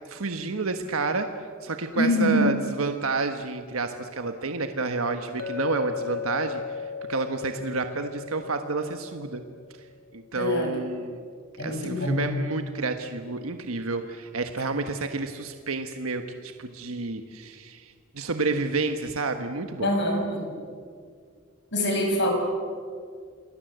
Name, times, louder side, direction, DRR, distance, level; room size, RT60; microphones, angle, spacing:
voice 1, 0.1-1.3 1.6-9.4 10.1-11.2 11.6-19.9, right 3 dB, 90° right, 6 dB, 1.4 m, -30 dB
voice 2, 2.0-2.5 10.3-10.8 11.6-12.3 19.8-20.6 21.7-22.3, left 1 dB, 55° left, 3 dB, 6.1 m, -25 dB
Chink clink, 5.4-9.6, left 7 dB, 90° left, 2.7 m, -36 dB
28.5 x 21.0 x 8.1 m, 2.1 s
head